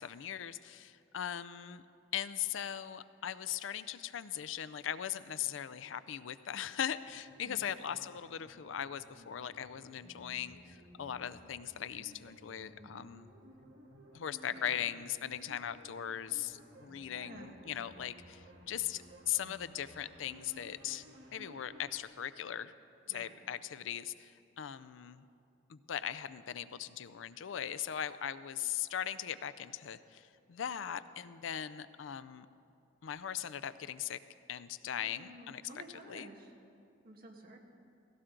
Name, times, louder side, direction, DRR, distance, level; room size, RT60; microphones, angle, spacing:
voice 1, 0.0-1.8 2.1-13.3 14.1-21.0 21.3-22.7 23.1-25.2 25.7-32.5 33.0-34.2 34.5-35.6 36.1-36.3, left 10 dB, 85° left, 15 dB, 0.4 m, -39 dB
sound 1, 6.9-22.0, equal, 85° right, 1.7 m, -57 dB
voice 2, 17.1-17.6 23.1-23.3 34.9-36.5 37.0-37.6, right 1 dB, 50° right, 1 dB, 1.6 m, -52 dB
17.0 x 16.5 x 3.8 m, 2.6 s
head